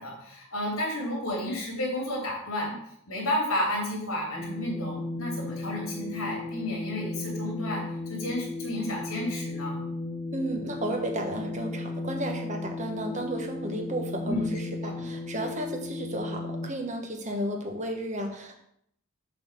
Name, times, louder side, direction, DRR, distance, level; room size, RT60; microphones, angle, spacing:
voice 1, 0.0-2.8 3.1-9.8 14.2-14.4 14.8-15.1, left 1 dB, 70° left, -2 dB, 3.1 m, -32 dB
sound 1, 4.4-16.7, left 2 dB, 10° left, 0.6 m, -35 dB
voice 2, 10.3-18.6, right 1 dB, 35° right, 3 dB, 1.2 m, -33 dB
7.4 x 4.2 x 6.7 m, 0.72 s
head